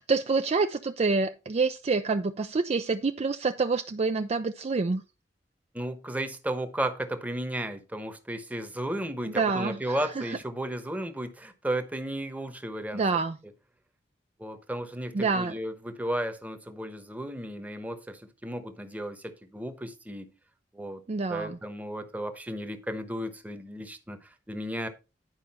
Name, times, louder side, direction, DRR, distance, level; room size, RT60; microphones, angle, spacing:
voice 1, 0.0-5.0 9.3-10.4 12.9-13.4 15.1-15.5 21.1-21.6, right 4 dB, 35° right, 0.4 m, -27 dB
voice 2, 5.7-13.0 14.4-20.3 20.7-21.0 21.3-24.9, right 1 dB, 10° right, 1.0 m, -34 dB
10.5 x 5.0 x 4.2 m
head